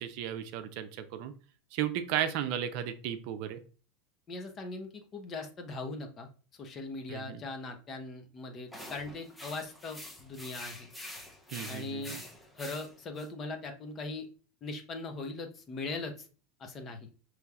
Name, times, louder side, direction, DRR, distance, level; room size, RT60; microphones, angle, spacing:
voice 1, 0.0-1.3 1.7-3.6 7.1-7.4 11.5-12.2, right 10 dB, 60° right, 9 dB, 0.6 m, -34 dB
voice 2, 4.3-6.3 6.6-10.9 11.6-12.2 12.6-14.3 14.6-16.3 16.6-17.1, left 3 dB, 35° left, 5 dB, 1.0 m, -40 dB
sound 1, 8.7-13.3, left 1 dB, 5° left, 0.9 m, -46 dB
5.5 x 3.1 x 2.4 m, 0.37 s
supercardioid pair, 115°, 0 cm